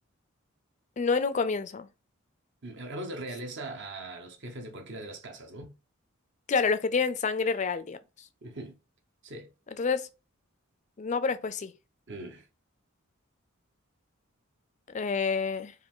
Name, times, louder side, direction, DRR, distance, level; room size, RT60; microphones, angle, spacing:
voice 1, 1.0-1.9 6.5-8.0 9.8-10.1 11.0-11.7 14.9-15.7, left 5 dB, 35° left, 0.4 m, -28 dB
voice 2, 2.6-5.7 8.4-8.8 9.2-9.5 12.1-12.5, right 1 dB, 55° right, 0.8 m, -40 dB
4.7 x 2.4 x 3.7 m
head